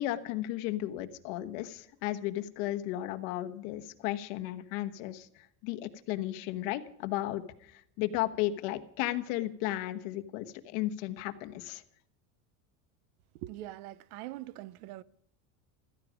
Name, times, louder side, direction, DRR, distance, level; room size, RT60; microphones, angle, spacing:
voice 1, 0.0-5.3 5.6-7.4 7.7-11.8, left 14 dB, 60° left, 1.2 m, -34 dB
voice 2, 13.3-15.0, right 16 dB, 85° right, 0.8 m, -43 dB
15.5 x 13.5 x 5.1 m
cardioid pair, 180°, 43 cm